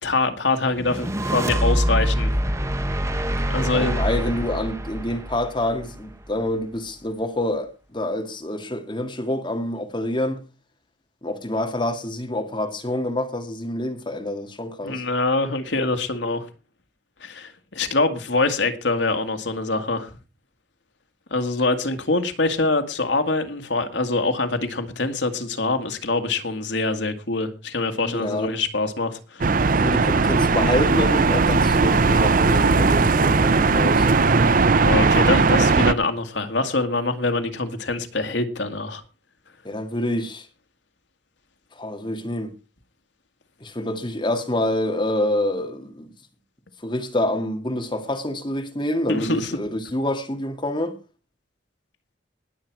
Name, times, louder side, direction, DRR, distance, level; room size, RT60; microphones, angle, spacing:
voice 1, 0.0-2.3 3.5-4.0 14.8-16.5 17.2-20.1 21.3-29.5 34.8-39.0 49.1-49.5, left 3 dB, 75° left, 2.0 m, -24 dB
sound 1, 0.8-6.1, equal, 15° right, 0.9 m, -25 dB
voice 2, 3.7-10.4 11.2-15.0 28.1-28.5 29.7-34.1 39.6-40.5 41.7-42.5 43.6-46.1 46.8-51.0, left 1 dB, 25° left, 2.0 m, -27 dB
sound 2, 29.4-35.9, right 4 dB, 45° right, 0.6 m, -18 dB
19.5 x 7.5 x 4.7 m
head